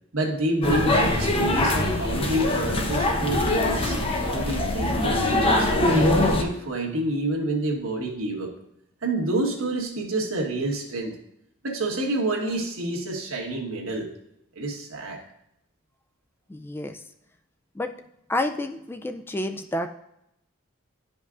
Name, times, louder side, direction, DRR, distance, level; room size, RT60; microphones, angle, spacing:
voice 1, 0.1-4.0 4.3-8.5 9.0-11.2 11.6-14.1 14.5-15.2, right 1 dB, 80° right, -1 dB, 1.5 m, -28 dB
sound 1, 0.6-6.4, left 1 dB, 30° left, 0.8 m, -23 dB
voice 2, 16.5-17.0 17.8-17.9 18.3-19.9, left 1 dB, 10° left, 6 dB, 0.3 m, -29 dB
11.0 x 5.3 x 2.5 m, 0.79 s
head